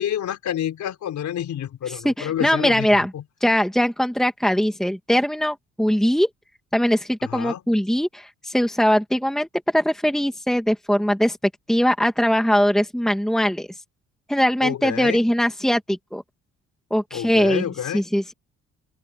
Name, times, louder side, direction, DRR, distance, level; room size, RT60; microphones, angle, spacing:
voice 1, 0.0-2.9 3.1-3.2 7.2-7.6 14.6-15.2 17.1-18.0, left 10 dB, 70° left, 4.5 m, -28 dB
voice 2, 1.9-3.1 3.4-6.3 6.7-11.4 11.7-13.7 14.3-16.2 16.9-17.6 17.9-18.3, equal, ahead, 2.2 m, -21 dB
open air
cardioid pair, 90°, 30 cm